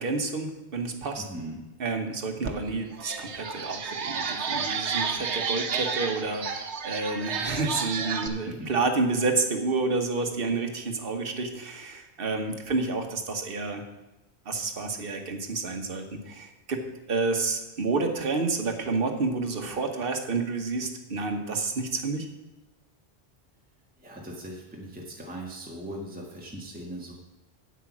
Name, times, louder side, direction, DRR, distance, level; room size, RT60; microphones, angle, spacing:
voice 1, 0.0-1.2 1.8-13.8 14.4-16.8 17.1-22.3, right 3 dB, 55° right, 4 dB, 1.4 m, -29 dB
voice 2, 1.2-1.7 8.4-8.7 24.0-27.1, right 1 dB, 10° right, -3 dB, 1.4 m, -39 dB
sound 1, 2.4-2.5 2.9-8.3, right 5 dB, 85° right, 1.2 m, -31 dB
8.4 x 8.2 x 6.0 m, 1.0 s
omnidirectional pair, 1.1 m